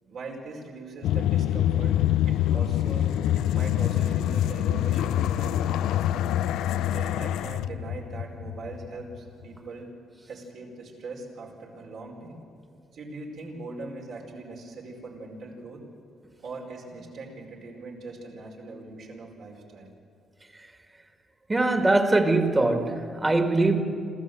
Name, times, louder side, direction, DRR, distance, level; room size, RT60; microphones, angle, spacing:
voice 1, 0.0-1.9 2.2-6.3 6.9-9.9 10.3-12.4 12.9-15.8 16.4-19.9, right 3 dB, 70° right, 5.0 m, -41 dB
sound 1, 1.0-9.2, left 12 dB, 90° left, 0.5 m, -25 dB
voice 2, 21.5-23.8, right 2 dB, 20° right, 2.0 m, -22 dB
26.5 x 14.5 x 7.9 m
cardioid pair, 90°, 0 cm